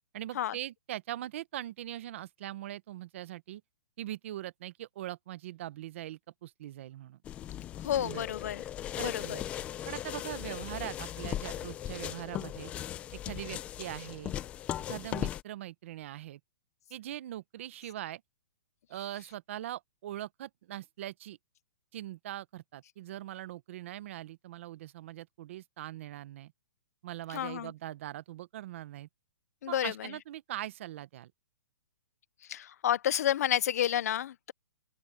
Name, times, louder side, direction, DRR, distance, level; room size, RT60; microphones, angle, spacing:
voice 1, 0.1-3.6 4.0-7.2 7.9-8.3 9.0-9.5 9.8-12.7 13.1-14.3 14.9-16.4 16.9-18.2 18.9-21.4 21.9-26.5 27.0-29.1 29.7-31.3, right 13 dB, 40° right, 0.8 m, -41 dB
sound 1, 7.2-15.4, left 11 dB, 10° left, 0.6 m, -38 dB
voice 2, 7.8-8.6 9.0-9.4 27.3-27.7 29.6-30.1 32.5-34.5, left 11 dB, 50° left, 0.4 m, -30 dB
open air
hypercardioid pair, 175°, 11 cm